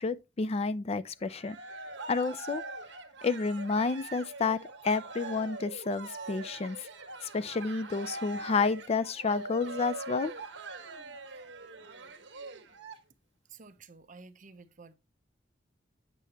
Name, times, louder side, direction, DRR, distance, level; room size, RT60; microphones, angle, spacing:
voice 1, 0.0-1.6 2.1-2.6 3.2-6.9 7.2-10.3, left 4 dB, 35° left, 0.4 m, -30 dB
Cheering, 1.2-13.0, right 3 dB, 75° right, 1.3 m, -43 dB
voice 2, 13.5-14.9, right 4 dB, 45° right, 0.8 m, -51 dB
8.3 x 6.8 x 2.9 m
head